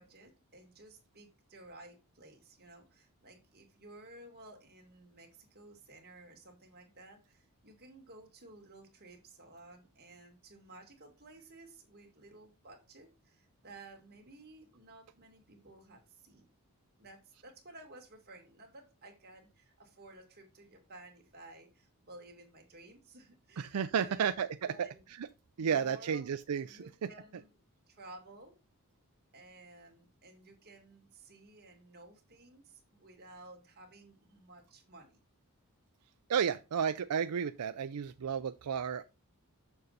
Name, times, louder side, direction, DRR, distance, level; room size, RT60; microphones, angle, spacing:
voice 1, 0.0-16.5 17.0-24.3 24.6-25.1 25.6-26.2 26.7-27.5 27.9-28.6 29.3-35.2, right 2 dB, 45° right, 2.2 m, -55 dB
voice 2, 23.6-24.7 25.2-25.3 25.6-27.1 36.3-39.0, right 7 dB, 85° right, 0.4 m, -32 dB
6.8 x 6.5 x 4.1 m
head